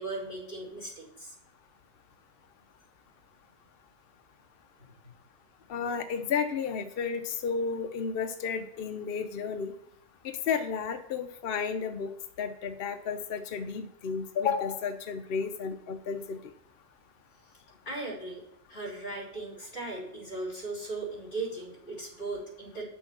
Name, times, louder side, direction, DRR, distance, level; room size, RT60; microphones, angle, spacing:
voice 1, 0.0-1.3 17.9-18.4 18.7-22.8, right 2 dB, 35° left, -3 dB, 3.9 m, -37 dB
voice 2, 5.7-9.7 10.2-12.1 12.4-16.4, left 6 dB, 60° left, 7 dB, 0.6 m, -32 dB
9.2 x 6.3 x 6.1 m, 0.72 s
omnidirectional pair, 1.7 m